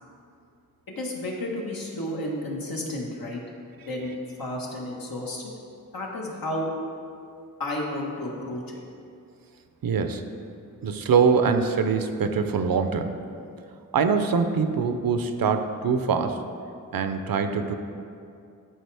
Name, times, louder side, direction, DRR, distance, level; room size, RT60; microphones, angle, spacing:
voice 1, 0.9-3.4 3.9-4.1 4.4-5.4 5.9-6.7 7.6-8.8, left 1 dB, 80° left, -2 dB, 1.4 m, -32 dB
voice 2, 9.8-10.2 10.8-13.1 13.9-16.4 16.9-17.7, right 5 dB, 75° right, 8 dB, 0.6 m, -23 dB
12.0 x 5.0 x 3.4 m, 2.5 s
wide cardioid pair, 105°, 35 cm